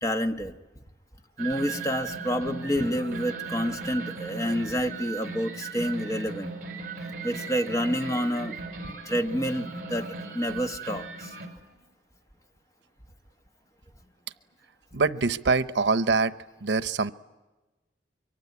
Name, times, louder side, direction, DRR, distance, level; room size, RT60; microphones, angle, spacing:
voice 1, 0.0-0.6 1.4-6.5 7.2-10.0 10.3-11.3, equal, 20° left, 6 dB, 1.2 m, -29 dB
sound 1, 1.4-11.5, right 4 dB, 50° right, 5.1 m, -37 dB
voice 2, 14.9-16.3 16.6-17.1, right 4 dB, 90° right, 13 dB, 0.8 m, -24 dB
24.0 x 24.0 x 9.6 m, 1.1 s
head